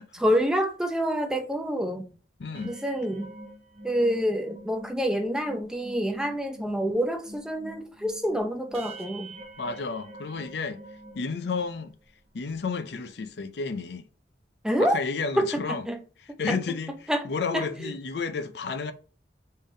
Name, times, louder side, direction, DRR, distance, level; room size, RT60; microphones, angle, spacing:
voice 1, 0.1-2.0 2.6-3.3 3.8-9.3 14.6-15.0 15.4-16.0 16.5-16.6 17.1-17.2 17.5-17.9, equal, 5° right, 0.6 m, -27 dB
voice 2, 2.4-2.7 9.6-10.8 11.2-11.9 12.3-14.1 14.8-15.8 16.4-18.9, left 4 dB, 70° left, 0.5 m, -31 dB
sound 1, 2.4-11.9 12.4-12.5 12.8-13.1, right 1 dB, 35° right, 0.9 m, -46 dB
5.3 x 3.7 x 2.6 m
head